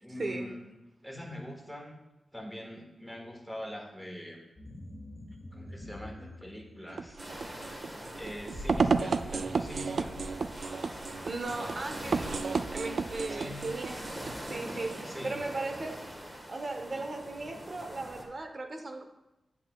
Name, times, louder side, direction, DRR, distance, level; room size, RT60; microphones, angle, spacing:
voice 1, 0.0-0.6 1.0-2.0 2.3-4.4 5.5-7.2 8.1-10.2 13.3-13.6 15.0-15.4, left 1 dB, ahead, 1 dB, 1.5 m, -43 dB
sound 1, 4.6-17.2, left 1 dB, 45° left, 1.6 m, -52 dB
sound 2, 6.9-15.1, right 4 dB, 65° right, 0.3 m, -33 dB
sound 3, 7.2-18.2, equal, 20° right, 1.4 m, -43 dB
voice 2, 11.2-12.4 12.7-16.1 16.5-19.0, right 2 dB, 45° right, 5 dB, 0.9 m, -37 dB
8.6 x 8.4 x 2.4 m, 0.95 s
wide cardioid pair, 95°, 0 cm